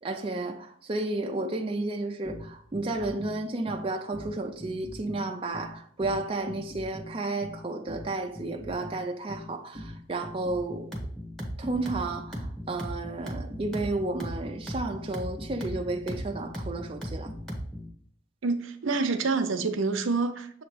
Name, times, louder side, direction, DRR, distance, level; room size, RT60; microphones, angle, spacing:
voice 1, 0.0-10.9 11.6-17.3, right 2 dB, 25° right, 0.4 m, -32 dB
sound 1, 2.2-17.9, equal, ahead, 1.0 m, -38 dB
voice 2, 18.4-20.6, right 4 dB, 75° right, 0.6 m, -27 dB
7.1 x 2.9 x 4.6 m
head